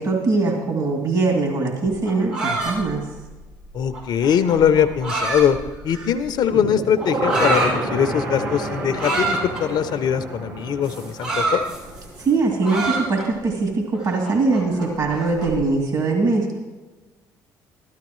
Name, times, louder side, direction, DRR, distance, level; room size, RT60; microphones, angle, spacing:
voice 1, 0.0-3.0 12.2-16.6, right 3 dB, 50° right, 0 dB, 2.7 m, -21 dB
sound 1, 1.9-6.3 7.0-7.7 8.9-9.6 10.8-12.3 12.6-13.5 13.9-15.6, right 2 dB, 85° right, 4.6 m, -27 dB
voice 2, 3.7-5.6 5.8-11.6, left 8 dB, 65° left, 10 dB, 0.6 m, -21 dB
sound 2, 6.4-12.5 12.8-12.9, right 2 dB, 70° right, 3.3 m, -28 dB
13.0 x 13.0 x 3.1 m, 1.2 s
supercardioid pair, 70°, 8 cm